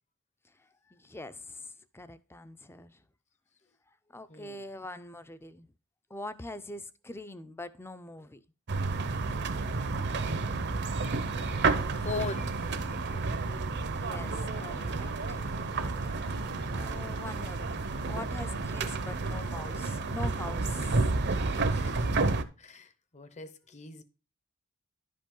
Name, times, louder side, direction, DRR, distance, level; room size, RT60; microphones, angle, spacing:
voice 1, 0.4-3.0 4.1-5.7 6.1-8.4 13.9-15.5 16.7-21.1, left 2 dB, 10° left, 0.5 m, -44 dB
voice 2, 4.3-4.6 12.0-12.6 21.3-22.1 22.6-24.0, left 4 dB, 35° left, 0.8 m, -40 dB
sound 1, 8.7-22.4, right 3 dB, 55° right, 0.7 m, -31 dB
sound 2, 11.1-21.4, left 1 dB, 55° left, 1.0 m, -53 dB
11.0 x 5.2 x 3.8 m
head